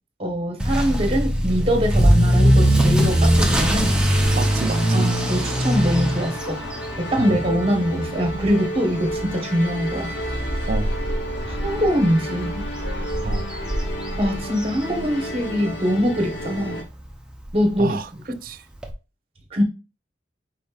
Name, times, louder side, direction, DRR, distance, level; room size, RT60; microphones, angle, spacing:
voice 1, 0.2-3.9 4.9-6.6 7.0-10.1 11.5-12.7 14.2-16.8 17.5-18.0 19.5-19.6, equal, 30° right, 1.2 m, -23 dB
Motor vehicle (road) / Accelerating revving vroom, 0.6-15.5 15.7-16.1 16.6-16.7 17.1-17.2 17.4-17.5 18.8-18.9, equal, 5° right, 0.7 m, -22 dB
sound 1, 1.4-16.8, equal, 75° left, 1.0 m, -33 dB
voice 2, 4.3-5.1 7.2-7.4 10.7-10.9 13.2-13.5 17.8-18.1 18.4-18.6, right 4 dB, 50° right, 0.4 m, -29 dB
5.1 x 4.1 x 2.4 m
head